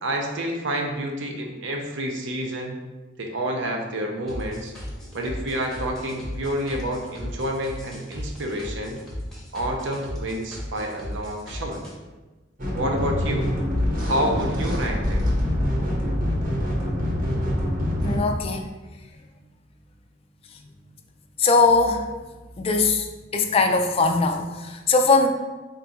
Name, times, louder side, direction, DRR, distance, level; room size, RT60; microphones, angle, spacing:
voice 1, 0.0-2.7 3.2-4.7 5.1-9.0 9.5-11.8 12.7-13.5 14.0-15.3, right 1 dB, 70° right, 2 dB, 0.5 m, -28 dB
sound 1, 4.3-11.9, left 1 dB, 5° left, 0.7 m, -36 dB
sound 2, 12.6-18.2, left 1 dB, 45° right, 0.9 m, -25 dB
voice 2, 18.0-18.6 21.4-22.0 22.6-23.1 23.3-25.3, left 3 dB, 30° left, 4 dB, 0.3 m, -20 dB
3.6 x 2.3 x 4.0 m, 1.2 s
head